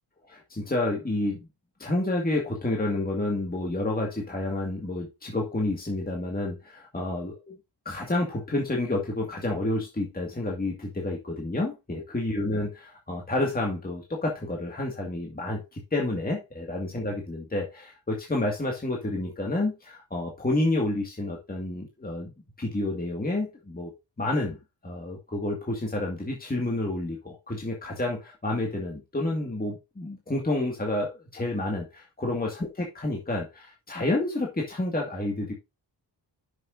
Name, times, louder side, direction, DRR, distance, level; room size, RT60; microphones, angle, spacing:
voice 1, 0.3-1.5 1.8-7.6 7.9-22.3 22.6-23.9 24.2-24.6 24.8-35.5, left 2 dB, 20° left, 2.0 m, -29 dB
10.5 x 6.6 x 2.6 m
wide cardioid pair, 115°, 45 cm